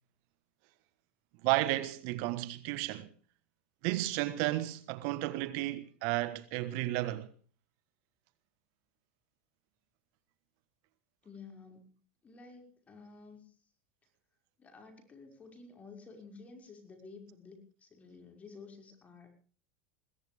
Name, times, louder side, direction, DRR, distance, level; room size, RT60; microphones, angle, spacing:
voice 1, 1.4-3.1 3.8-7.3, right 17 dB, 65° right, 1.3 m, -33 dB
voice 2, 11.2-11.9 12.2-13.5 14.6-19.3, left 4 dB, 25° left, 5.9 m, -52 dB
21.5 x 17.5 x 3.5 m
supercardioid pair, 120°, 6 cm